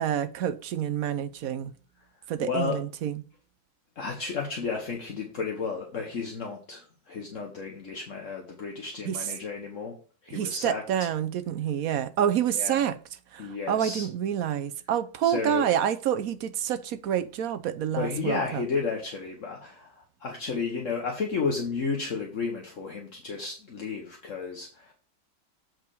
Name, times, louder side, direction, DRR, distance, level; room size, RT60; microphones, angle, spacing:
voice 1, 0.0-1.7 2.3-3.2 9.1-9.2 10.3-13.0 13.3-18.6, right 9 dB, 70° right, 1.1 m, -28 dB
voice 2, 2.4-2.8 3.9-10.0 10.2-10.8 12.5-12.8 13.4-14.1 15.2-15.7 17.9-24.9, left 5 dB, 55° left, 1.6 m, -32 dB
7.6 x 4.9 x 4.8 m
omnidirectional pair, 1.6 m